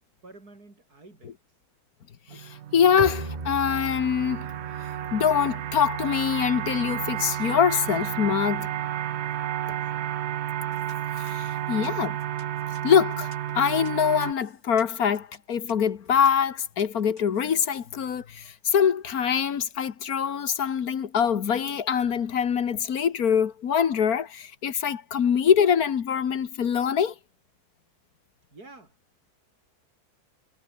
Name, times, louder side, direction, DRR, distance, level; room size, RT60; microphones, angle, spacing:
voice 1, 0.2-1.4 9.6-10.4 28.5-29.0, right 2 dB, 75° right, 5.8 m, -50 dB
voice 2, 2.3-4.5 5.1-8.7 11.2-12.2 12.8-27.1, left 7 dB, 70° left, 1.8 m, -24 dB
sound 1, 2.3-14.3, right 11 dB, 60° right, 0.8 m, -32 dB
Bowed string instrument, 3.0-8.6, right 2 dB, 25° right, 2.6 m, -40 dB
sound 2, 10.7-17.8, left 3 dB, 50° left, 4.0 m, -54 dB
omnidirectional pair, 1.6 m